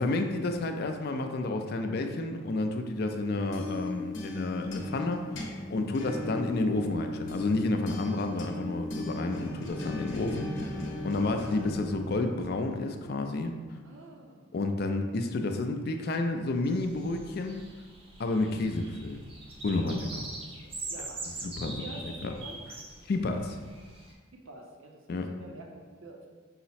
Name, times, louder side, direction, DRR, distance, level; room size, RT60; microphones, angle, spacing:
voice 1, 0.0-5.2 5.7-13.5 14.5-17.6 18.2-19.2 19.6-20.0 21.4-21.8 22.2-22.3 23.1-23.6 25.1-25.3, left 2 dB, 50° left, 5 dB, 0.4 m, -30 dB
sound 1, 3.2-12.8, left 1 dB, 70° left, 0.8 m, -38 dB
voice 2, 13.8-14.5 18.4-18.8 19.8-22.6 24.3-26.3, right 1 dB, 75° right, 1 dB, 0.6 m, -47 dB
sound 2, 16.6-24.1, right 2 dB, 30° right, 0.5 m, -43 dB
5.6 x 2.0 x 4.1 m, 1.4 s
head